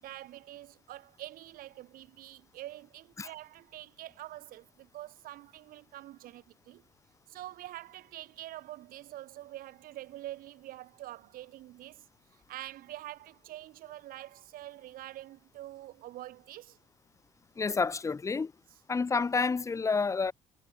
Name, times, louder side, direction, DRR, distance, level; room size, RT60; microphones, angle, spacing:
voice 1, 0.0-6.8 7.3-12.0 12.5-16.8, right 15 dB, 65° right, 2.6 m, -46 dB
voice 2, 17.6-18.5 18.9-20.3, left 4 dB, 20° left, 0.5 m, -29 dB
hypercardioid pair, 60°, 16 cm